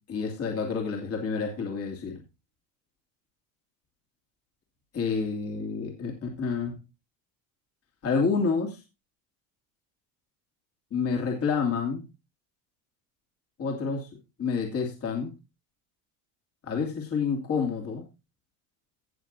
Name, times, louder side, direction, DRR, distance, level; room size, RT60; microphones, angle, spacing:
voice 1, 0.1-2.2 4.9-6.8 8.0-8.8 10.9-12.0 13.6-14.1 14.4-15.3 16.6-18.0, left 5 dB, 40° left, 1 dB, 2.7 m, -28 dB
17.5 x 6.9 x 2.7 m, 0.26 s
cardioid pair, 140°, 38 cm